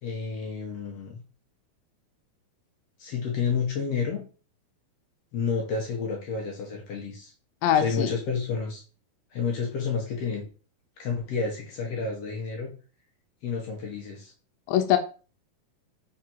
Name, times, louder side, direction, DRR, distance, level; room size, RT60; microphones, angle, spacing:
voice 1, 0.0-1.2 3.0-4.2 5.3-7.3 7.7-8.8 9.3-10.5 11.0-12.7 13.4-14.3, left 5 dB, 65° left, 0 dB, 1.5 m, -30 dB
voice 2, 7.6-8.1 14.7-15.0, left 10 dB, 85° left, 6 dB, 2.4 m, -22 dB
5.9 x 3.6 x 4.4 m, 0.36 s
omnidirectional pair, 4.2 m